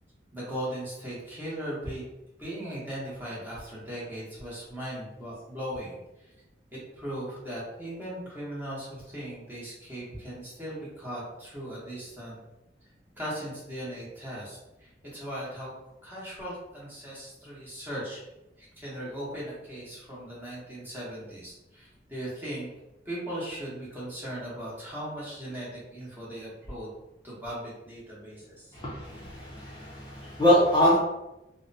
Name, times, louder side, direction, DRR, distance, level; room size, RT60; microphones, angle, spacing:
voice 1, 0.3-2.0 2.4-6.3 6.7-12.4 13.2-15.7 16.0-18.2 18.6-22.7 23.0-26.9 27.2-28.8 30.2-30.3, right 1 dB, 10° right, -7 dB, 0.9 m, -38 dB
voice 2, 28.7-31.0, equal, 25° left, -6 dB, 0.5 m, -24 dB
2.7 x 2.0 x 2.6 m, 0.95 s
head